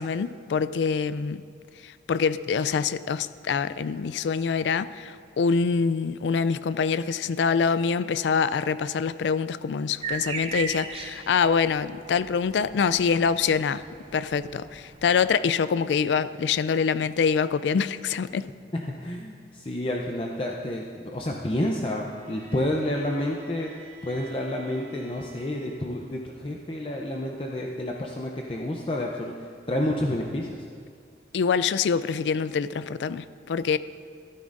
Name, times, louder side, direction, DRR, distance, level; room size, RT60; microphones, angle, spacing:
voice 1, 0.0-1.4 1.8-13.8 14.1-18.5 31.3-33.8, left 6 dB, 85° left, 15 dB, 0.3 m, -25 dB
sound 1, 10.0-15.3, right 5 dB, 30° right, 0.5 m, -38 dB
voice 2, 18.7-23.7 24.0-30.6, left 1 dB, 30° left, 0 dB, 0.5 m, -30 dB
Bowed string instrument, 21.8-26.1, right 3 dB, 60° right, 2.4 m, -49 dB
14.0 x 12.0 x 2.6 m, 2.2 s
head